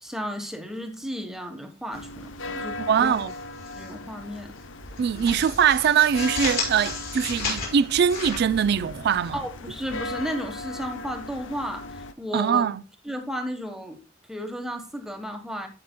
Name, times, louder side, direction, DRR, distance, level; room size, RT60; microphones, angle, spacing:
voice 1, 0.0-3.1 3.7-4.5 9.3-12.7 13.0-14.0 14.3-15.7, equal, 5° right, 1.2 m, -34 dB
sound 1, 1.9-12.1, left 2 dB, 85° left, 0.7 m, -38 dB
voice 2, 2.8-3.3 5.0-9.4 12.3-12.8, right 8 dB, 60° right, 0.3 m, -22 dB
sound 2, 3.0-3.9 4.2-4.4 4.8-9.3, left 4 dB, 50° left, 5.0 m, -33 dB
16.0 x 5.8 x 2.2 m
head